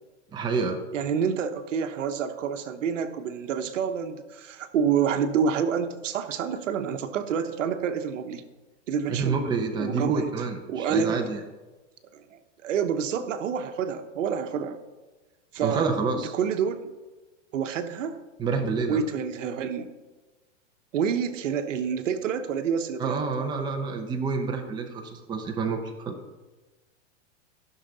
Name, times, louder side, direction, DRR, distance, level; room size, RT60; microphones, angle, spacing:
voice 1, 0.3-0.8 9.1-11.4 15.6-16.3 18.4-19.0 23.0-26.2, right 4 dB, 10° right, 3 dB, 0.8 m, -28 dB
voice 2, 0.9-8.4 8.9-9.4 9.8-10.3 10.7-11.2 12.1-14.8 15.5-15.9 16.3-16.9 17.5-18.2 18.9-19.9 20.9-23.2, right 7 dB, 75° right, 9 dB, 1.1 m, -28 dB
15.0 x 6.5 x 4.1 m, 1.2 s
hypercardioid pair, 145°, 38 cm